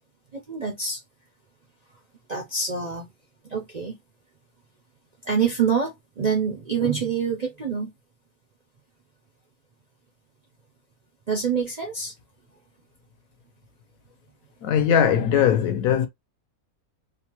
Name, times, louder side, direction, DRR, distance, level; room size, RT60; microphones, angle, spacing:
voice 1, 0.3-1.0 2.3-3.1 3.4-3.9 5.2-7.9 11.3-12.1, right 6 dB, 65° right, 0.4 m, -26 dB
voice 2, 14.6-16.1, left 8 dB, 70° left, 1.0 m, -20 dB
2.8 x 2.2 x 2.8 m
omnidirectional pair, 1.6 m